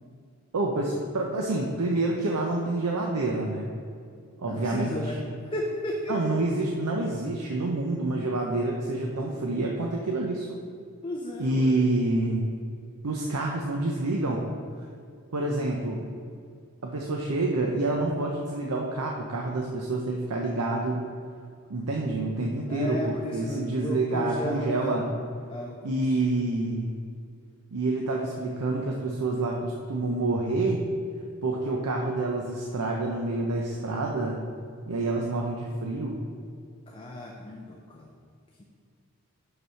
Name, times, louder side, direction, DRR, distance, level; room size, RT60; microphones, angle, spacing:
voice 1, 0.5-3.7 4.4-5.2 6.1-10.5 11.4-12.6 13.0-14.4 15.3-16.0 16.8-21.0 21.7-25.1 25.8-27.0 27.7-30.8 31.4-34.4 34.9-36.2, right 2 dB, 85° right, 0 dB, 0.7 m, -28 dB
voice 2, 4.5-6.4 11.0-11.8 22.7-25.0 25.5-26.3 36.9-38.1 38.6-38.7, left 1 dB, 25° left, 0 dB, 0.5 m, -34 dB
6.0 x 5.5 x 5.6 m, 2.4 s
head